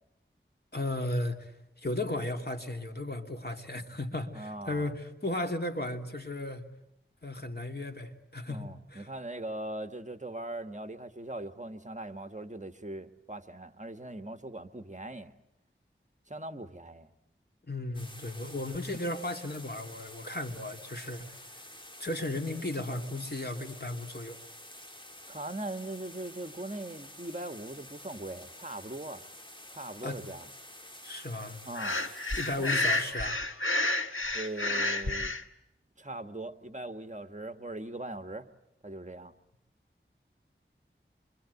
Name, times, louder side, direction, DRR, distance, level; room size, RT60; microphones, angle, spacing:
voice 1, 0.7-1.5 1.8-6.6 7.2-9.1 17.6-21.3 22.0-24.4 30.0-30.2 31.0-31.6 32.3-33.4, left 1 dB, 50° left, 3 dB, 2.9 m, -35 dB
voice 2, 4.3-4.9 8.5-15.3 16.3-17.1 25.3-29.3 29.7-30.5 31.6-32.0 32.5-32.7 34.3-35.3 36.0-38.5 38.8-39.3, right 1 dB, 35° right, 8 dB, 1.5 m, -40 dB
sound 1, 17.9-33.1, left 1 dB, 25° left, 2.9 m, -49 dB
Breathing, 31.7-35.4, left 2 dB, 80° left, 1.5 m, -30 dB
26.5 x 24.5 x 8.3 m, 0.87 s
wide cardioid pair, 40°, 21 cm